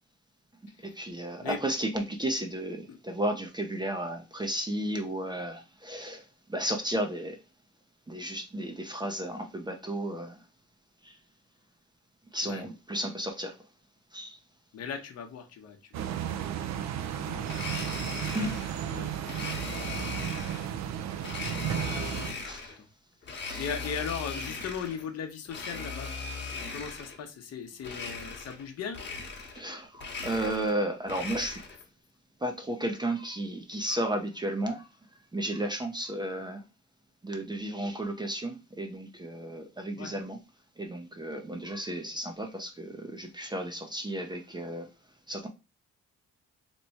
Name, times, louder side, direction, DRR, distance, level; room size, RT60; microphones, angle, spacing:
voice 1, 0.8-7.4 8.1-10.4 11.0-11.2 12.3-13.6 14.1-14.4 17.7-17.8 18.3-18.5 22.4-22.7 23.5-23.6 29.5-31.6 32.4-34.9 35.3-36.6 37.2-40.4 40.8-44.9 45.3-45.5, right 1 dB, 15° right, 0.5 m, -33 dB
voice 2, 14.7-16.6 17.1-17.5 18.8-19.5 21.0-22.4 22.8-22.9 23.2-26.1 26.7-29.0 40.0-40.1, left 6 dB, 55° left, 0.8 m, -39 dB
sound 1, 15.9-22.3, right 10 dB, 65° right, 0.5 m, -34 dB
Domestic sounds home sounds, 17.4-18.8 19.3-20.7 21.2-22.8 23.2-25.0 25.4-27.2 27.8-28.7 28.9-29.7 29.9-31.8, left 4 dB, 35° left, 1.0 m, -38 dB
3.0 x 2.2 x 4.1 m
cardioid pair, 90°, 30 cm